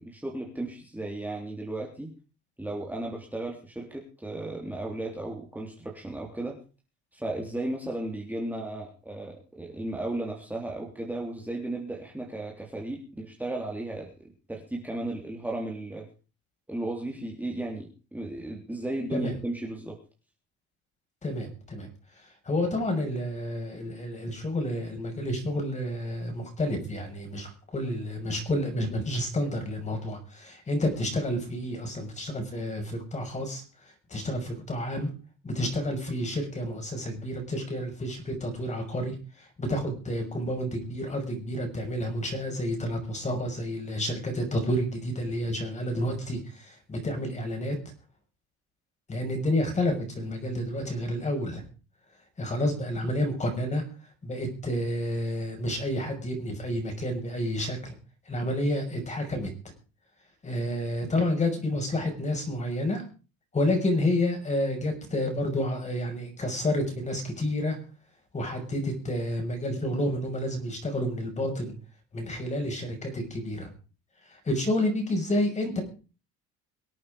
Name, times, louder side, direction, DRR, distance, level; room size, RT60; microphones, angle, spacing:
voice 1, 0.0-2.1 2.6-6.6 7.1-16.0 16.7-19.9, right 2 dB, 5° right, -1 dB, 3.5 m, -35 dB
voice 2, 21.2-21.9 22.4-33.6 34.1-35.1 35.4-39.2 39.6-47.8 49.1-51.6 52.4-53.8 54.2-57.9 58.3-59.5 60.4-63.0 63.5-67.8 68.3-71.7 72.1-73.7 74.4-75.8, left 1 dB, 25° left, 4 dB, 6.1 m, -29 dB
24.0 x 8.6 x 5.1 m, 0.36 s
cardioid pair, 125°, 30 cm